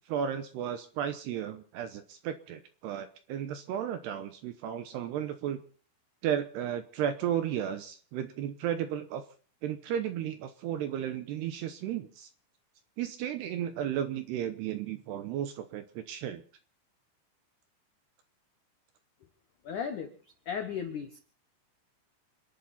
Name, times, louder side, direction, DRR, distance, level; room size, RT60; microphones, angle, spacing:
voice 1, 0.1-5.6 6.2-9.2 9.6-12.3 13.0-16.4, right 9 dB, 75° right, 9 dB, 2.6 m, -34 dB
voice 2, 19.6-20.1 20.5-21.2, left 7 dB, 80° left, 7 dB, 1.7 m, -35 dB
29.5 x 11.0 x 4.3 m, 0.42 s
omnidirectional pair, 5.7 m